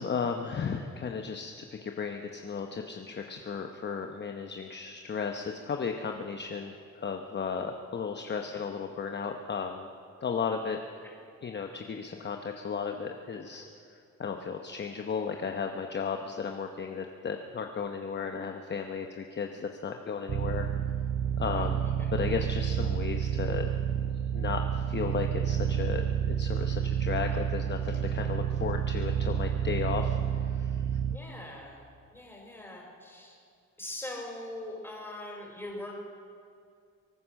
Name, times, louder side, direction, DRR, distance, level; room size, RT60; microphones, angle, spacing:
voice 1, 0.0-9.9 10.2-10.8 11.4-13.6 13.9-20.7 21.4-21.8 22.1-23.7 24.3-31.0, left 6 dB, 35° left, 4 dB, 1.0 m, -34 dB
sound 1, 20.3-31.2, right 9 dB, 35° right, 0.5 m, -30 dB
voice 2, 21.5-22.1 31.1-31.8 32.1-33.4 33.8-35.9, left 1 dB, 5° left, -1 dB, 4.9 m, -42 dB
24.0 x 9.5 x 6.4 m, 2.3 s
cardioid pair, 90°, 30 cm